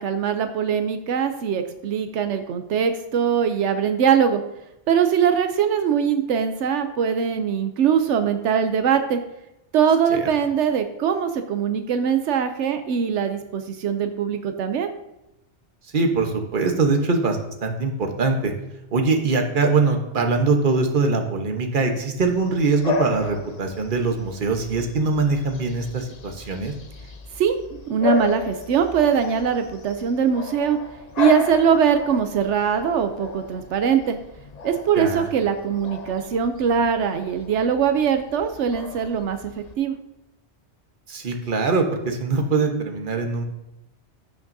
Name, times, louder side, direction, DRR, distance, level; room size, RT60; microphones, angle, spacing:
voice 1, 0.0-4.4 4.9-9.2 9.7-14.9 27.4-27.6 27.9-30.8 31.2-34.2 34.6-39.9, right 7 dB, 85° right, 8 dB, 1.0 m, -22 dB
voice 2, 15.9-18.5 18.9-26.7 34.9-35.3 41.1-43.4, right 3 dB, 45° right, 4 dB, 1.2 m, -22 dB
Bark / Bird vocalization bird call bird song, 22.2-39.7, left 5 dB, 40° left, 0.7 m, -34 dB
15.5 x 5.9 x 2.7 m, 0.90 s
omnidirectional pair, 1.2 m